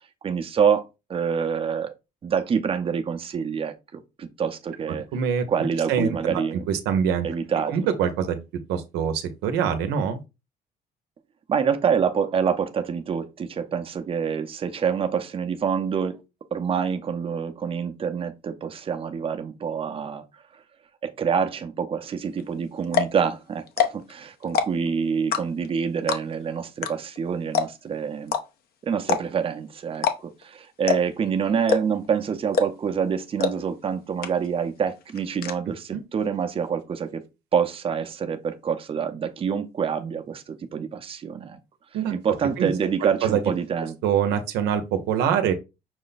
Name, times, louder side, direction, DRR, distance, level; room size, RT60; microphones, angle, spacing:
voice 1, 0.2-0.8 1.1-1.9 2.2-5.1 5.5-6.6 7.2-7.9 11.5-16.2 16.5-20.3 21.0-28.3 28.8-37.2 37.5-41.6 42.1-44.0, right 7 dB, 35° right, 0.7 m, -26 dB
voice 2, 5.1-5.5 5.9-6.1 6.7-7.3 7.7-8.4 8.7-10.2 35.9-36.0 41.9-42.1 42.6-42.7 43.0-43.4 44.0-45.5, right 8 dB, 90° right, 0.8 m, -24 dB
sound 1, 22.4-22.5 22.8-23.2 23.7-24.1 24.4-24.9 25.3-25.7 26.1-26.4 26.8-26.9 27.2-27.3 27.5-27.9 28.3-28.4 29.0-29.5 29.9-30.2 30.4-30.5 30.9-31.2 31.7-32.1 32.5-32.9 33.4-33.5 33.8-33.9 34.2-34.6 34.9-35.5, left 6 dB, 65° left, 0.8 m, -23 dB
6.1 x 2.2 x 4.0 m
cardioid pair, 110°, 17 cm